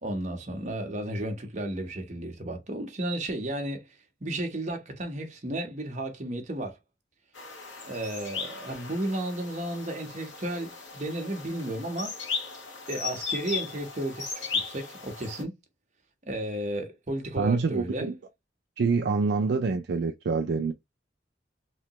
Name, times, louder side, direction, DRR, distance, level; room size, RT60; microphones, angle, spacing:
voice 1, 0.0-3.8 4.2-6.8 7.8-12.1 12.9-15.5 16.2-18.1, right 1 dB, 40° right, 0.9 m, -33 dB
sound 1, 7.3-15.4, left 5 dB, 90° left, 1.1 m, -37 dB
voice 2, 17.4-18.2 18.8-20.7, right 4 dB, 60° right, 0.4 m, -26 dB
3.2 x 2.8 x 2.9 m
head